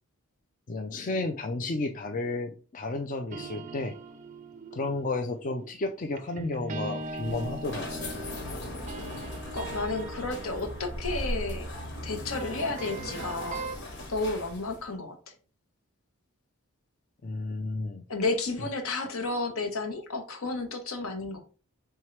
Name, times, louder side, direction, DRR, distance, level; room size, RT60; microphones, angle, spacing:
voice 1, 0.7-3.9 4.7-8.2 17.2-18.0, left 2 dB, 35° left, 4 dB, 0.4 m, -32 dB
sound 1, 3.3-13.8, right 2 dB, 35° right, 0.4 m, -41 dB
sound 2, 7.0-14.9, left 1 dB, 55° left, 1.4 m, -38 dB
voice 2, 9.5-11.7 12.0-13.7 14.1-15.2 18.1-21.4, left 3 dB, 75° left, 5 dB, 1.0 m, -32 dB
4.5 x 3.6 x 3.2 m, 0.36 s
head